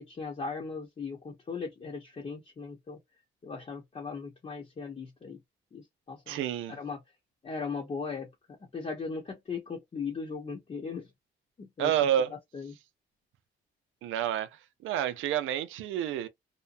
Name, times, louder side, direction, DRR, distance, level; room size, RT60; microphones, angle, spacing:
voice 1, 0.0-3.0 3.4-5.4 5.7-6.4 6.7-7.0 7.4-8.3 8.7-11.1 11.6-11.9 12.3-12.8, left 5 dB, 35° left, 0.9 m, -38 dB
voice 2, 6.3-6.7 11.8-12.3 14.0-14.5 14.8-16.3, right 10 dB, 85° right, 0.5 m, -29 dB
2.8 x 2.1 x 2.5 m
cardioid pair, 90°, 20 cm